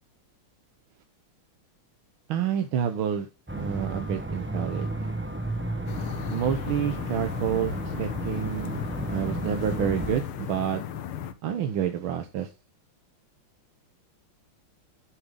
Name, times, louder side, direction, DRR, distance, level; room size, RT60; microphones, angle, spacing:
voice 1, 2.3-3.3 3.6-4.9 6.3-10.8 11.4-12.5, right 9 dB, 75° right, 7 dB, 1.7 m, -29 dB
sound 1, 3.5-10.2, right 1 dB, 10° right, 0.6 m, -33 dB
sound 2, 5.9-11.3, left 9 dB, 80° left, 1.8 m, -36 dB
10.0 x 7.2 x 3.8 m, 0.27 s
omnidirectional pair, 2.3 m